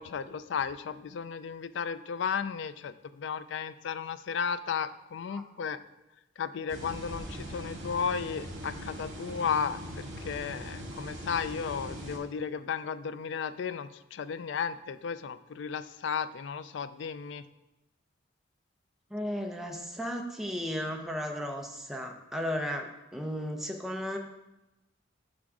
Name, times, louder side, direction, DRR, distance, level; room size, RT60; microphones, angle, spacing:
voice 1, 0.0-5.8 6.4-17.4, left 6 dB, 65° left, 13 dB, 0.3 m, -34 dB
sound 1, 6.7-12.2, equal, 70° right, 2.0 m, -41 dB
voice 2, 19.1-24.2, equal, ahead, 2 dB, 0.6 m, -35 dB
6.1 x 6.1 x 4.8 m, 0.97 s
head